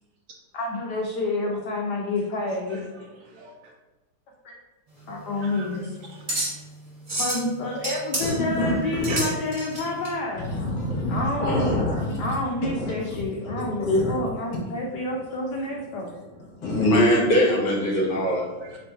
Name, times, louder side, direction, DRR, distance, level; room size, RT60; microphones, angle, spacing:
voice 1, 0.5-2.8 4.4-4.6 5.1-5.8 7.2-10.5 11.1-11.8 12.2-16.1, left 2 dB, 80° left, -1 dB, 0.9 m, -29 dB
voice 2, 2.7-3.7 5.3-6.2 8.5-9.2 18.0-18.8, right 4 dB, 75° right, 1 dB, 1.2 m, -42 dB
sound 1, 4.9-10.1, right 1 dB, 25° right, 0.7 m, -31 dB
voice 3, 8.2-8.7 9.0-9.2 10.4-12.4 12.8-14.1 16.6-18.5, left 1 dB, 60° left, -3 dB, 1.4 m, -24 dB
3.7 x 2.7 x 4.4 m, 1.2 s
omnidirectional pair, 2.4 m